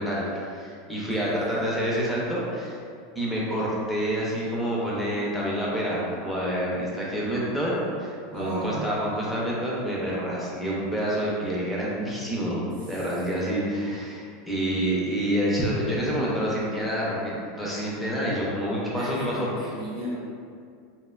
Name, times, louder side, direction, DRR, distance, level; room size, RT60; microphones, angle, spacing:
voice 1, 0.0-2.8 3.2-19.5, equal, ahead, -6 dB, 0.4 m, -28 dB
voice 2, 1.1-1.9 8.3-8.9 12.9-13.0 19.0-20.1, right 1 dB, 50° right, -5 dB, 0.7 m, -36 dB
2.7 x 2.1 x 2.2 m, 2.3 s
supercardioid pair, 170°, 0 cm